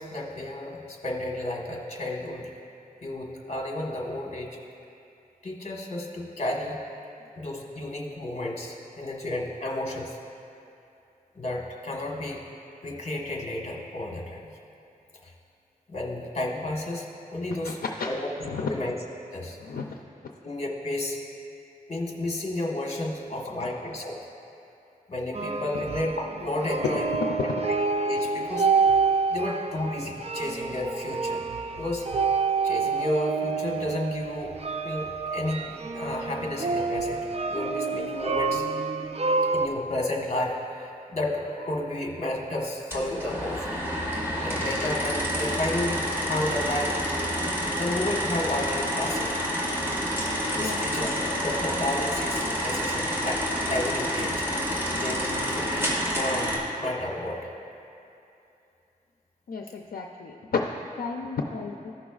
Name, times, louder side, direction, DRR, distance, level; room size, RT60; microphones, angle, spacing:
voice 1, 0.0-2.5 3.0-4.5 5.4-6.8 7.4-10.2 11.3-12.4 12.8-14.5 15.2-15.3 15.9-17.8 18.1-18.2 18.7-18.9 19.3-19.6 20.4-21.2 21.9-24.2 25.1-27.1 28.1-28.7 29.3-31.4 31.8-32.1 32.6-34.6 34.8-38.6 39.5-43.7 44.4-49.3 50.5-51.1 51.4-54.5 54.9-56.5 56.8-57.5, left 1 dB, 45° left, -1 dB, 1.3 m, -32 dB
voice 2, 17.6-18.1 18.4-18.7 19.6-20.0 23.3-23.7 25.7-25.8 50.5-50.8 59.5-60.7 61.0-61.9, left 4 dB, 85° left, 2 dB, 0.5 m, -33 dB
sound 1, 25.3-39.7, right 4 dB, 45° right, 0.4 m, -28 dB
sound 2, 42.9-56.6, equal, 15° right, 1.8 m, -28 dB
15.0 x 5.9 x 2.4 m, 2.7 s
wide cardioid pair, 75°, 15 cm